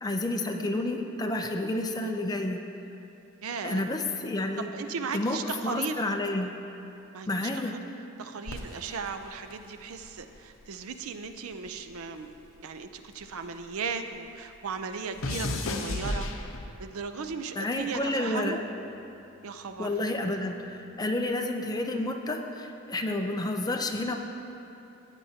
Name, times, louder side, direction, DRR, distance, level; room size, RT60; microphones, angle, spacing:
voice 1, 0.0-2.6 3.6-4.7 5.1-5.4 5.6-6.5 7.3-7.7 17.6-18.6 19.8-24.2, left 2 dB, 20° left, 3 dB, 0.6 m, -30 dB
voice 2, 3.4-3.9 4.6-6.0 7.1-7.7 8.2-16.3 16.8-18.6 19.4-19.9, right 5 dB, 75° right, 8 dB, 0.5 m, -36 dB
sound 1, 8.5-11.0 11.2-13.9 14.2-17.0 17.7-18.1, left 2 dB, 65° left, 0.8 m, -36 dB
15.0 x 8.8 x 2.8 m, 2.8 s
head